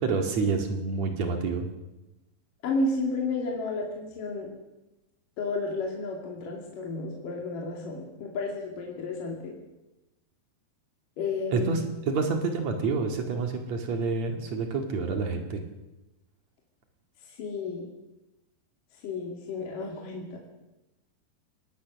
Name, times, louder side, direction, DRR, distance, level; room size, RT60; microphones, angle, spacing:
voice 1, 0.0-1.7 11.5-11.8 12.1-15.7, right 4 dB, 50° right, 4 dB, 2.9 m, -28 dB
voice 2, 2.6-4.5 5.4-9.5 11.2-11.7 17.3-17.9 19.0-20.4, left 3 dB, 55° left, -1 dB, 4.0 m, -32 dB
23.0 x 19.0 x 6.4 m, 1.0 s
omnidirectional pair, 4.7 m